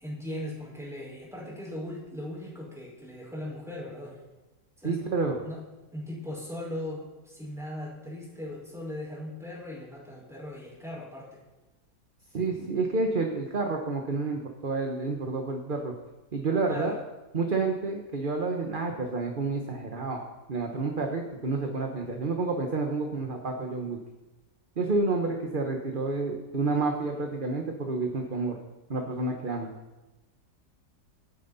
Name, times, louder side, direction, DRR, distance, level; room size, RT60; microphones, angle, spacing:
voice 1, 0.0-4.2 4.8-5.0 5.4-5.6 5.9-11.4 16.7-17.0, left 1 dB, ahead, -4 dB, 5.0 m, -38 dB
voice 2, 4.8-5.4 12.3-15.9 16.3-16.9 17.3-20.2 20.5-24.0 24.8-28.5 28.9-29.7, right 3 dB, 35° right, 2 dB, 1.2 m, -29 dB
27.5 x 9.3 x 4.2 m, 1.1 s
omnidirectional pair, 1.8 m